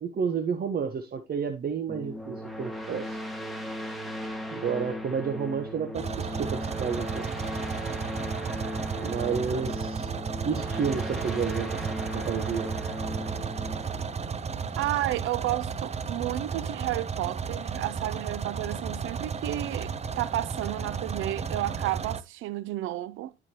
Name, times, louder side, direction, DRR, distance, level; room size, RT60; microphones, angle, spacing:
voice 1, 0.0-3.2 4.5-7.2 9.0-10.1 10.4-12.7, right 6 dB, 50° right, 1.0 m, -31 dB
sound 1, 1.9-15.2, equal, ahead, 1.7 m, -37 dB
sound 2, 5.9-22.2, right 6 dB, 35° right, 0.7 m, -33 dB
voice 2, 14.8-23.3, right 15 dB, 85° right, 0.5 m, -32 dB
11.0 x 4.9 x 2.9 m
cardioid pair, 90°, 20 cm